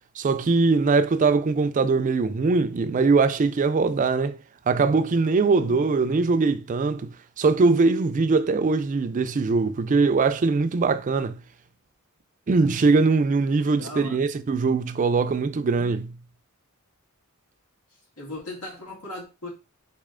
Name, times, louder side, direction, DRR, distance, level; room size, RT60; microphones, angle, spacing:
voice 1, 0.2-4.4 4.7-11.4 12.5-16.2, right 4 dB, 35° right, 0.3 m, -21 dB
voice 2, 5.5-5.9 13.8-14.2 18.2-19.5, left 2 dB, 85° left, 2.0 m, -37 dB
4.1 x 3.2 x 3.6 m
head